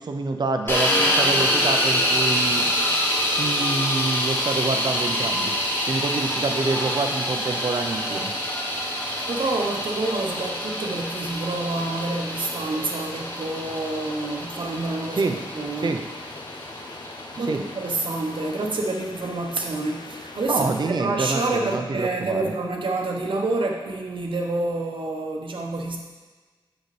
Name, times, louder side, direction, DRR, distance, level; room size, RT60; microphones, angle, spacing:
voice 1, 0.0-2.6 3.4-5.5 5.9-8.3 15.2-15.4 15.8-16.0 17.5-17.6 20.5-22.5, right 3 dB, 55° right, 5 dB, 0.6 m, -27 dB
sound 1, 0.7-18.6, equal, 25° left, 1.2 m, -26 dB
sound 2, 1.3-20.8, left 3 dB, 55° left, 0.6 m, -41 dB
voice 2, 9.3-16.0 17.4-26.0, right 2 dB, 70° right, 1 dB, 1.0 m, -28 dB
6.7 x 6.4 x 3.3 m, 1.3 s
wide cardioid pair, 75°, 9 cm